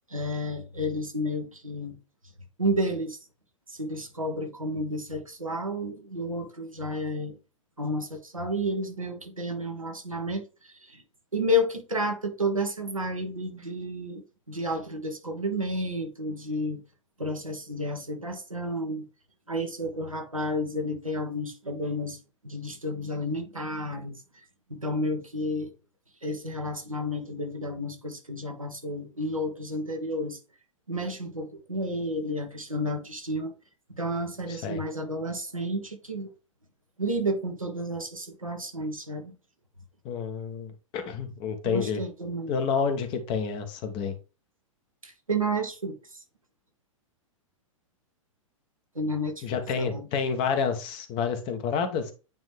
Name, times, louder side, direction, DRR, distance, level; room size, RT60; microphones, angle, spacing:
voice 1, 0.1-1.9 2.6-3.2 3.7-7.3 7.8-11.0 11.3-16.8 17.2-19.1 19.5-22.2 22.4-25.7 26.2-30.4 30.9-33.5 33.9-36.3 37.0-39.3 41.6-42.5 45.0-46.2 48.9-49.5 49.7-50.1, equal, 85° right, 1.4 m, -31 dB
voice 2, 40.0-42.0 42.5-44.1 49.4-52.1, left 6 dB, 30° left, 1.1 m, -29 dB
8.9 x 3.1 x 3.4 m
figure-of-eight pair, 105°, 17 cm